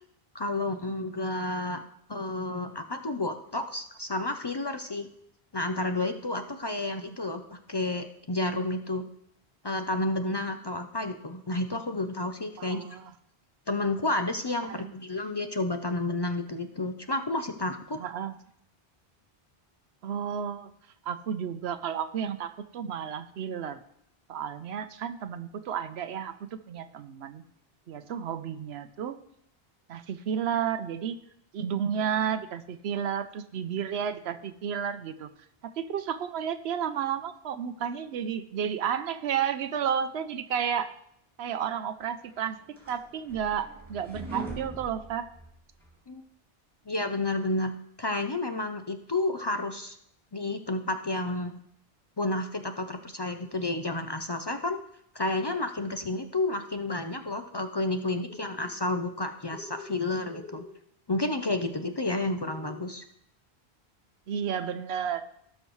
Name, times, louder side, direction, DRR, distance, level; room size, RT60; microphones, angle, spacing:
voice 1, 0.3-1.8 2.1-5.1 5.5-9.1 9.6-13.0 13.7-18.0 46.1-46.2 46.9-50.0 50.3-51.6 52.2-54.8 55.1-60.6 61.1-63.0, left 2 dB, 35° left, 7 dB, 0.4 m, -31 dB
voice 2, 12.6-13.1 14.6-14.9 18.0-18.3 20.0-20.7 21.1-23.8 24.3-27.4 27.9-29.2 29.9-31.2 31.5-35.3 35.6-40.9 41.4-42.6 42.9-45.3 64.3-65.3, right 8 dB, 85° right, 11 dB, 0.9 m, -32 dB
sound 1, 42.3-46.0, right 3 dB, 15° right, 2.8 m, -42 dB
sound 2, 58.2-58.7 59.5-60.0 60.2-60.7 61.4-61.9 62.4-62.9, left 3 dB, 65° left, 1.4 m, -45 dB
17.5 x 6.3 x 3.1 m, 0.72 s
omnidirectional pair, 1.1 m